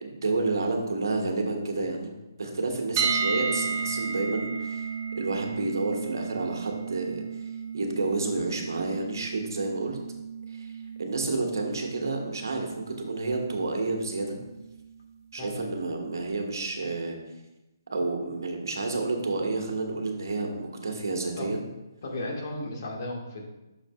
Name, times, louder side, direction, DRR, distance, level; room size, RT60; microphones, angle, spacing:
voice 1, 0.0-2.1 2.4-4.9 5.2-7.2 7.7-10.0 10.5-10.7 11.0-14.4 15.3-17.2 17.9-21.6, right 3 dB, 65° right, 2 dB, 1.3 m, -30 dB
sound 1, 3.0-14.9, right 5 dB, 30° right, 0.7 m, -34 dB
voice 2, 22.0-23.5, left 1 dB, 50° left, -1 dB, 1.7 m, -34 dB
9.0 x 6.0 x 2.4 m, 1.0 s
figure-of-eight pair, 145°, 2 cm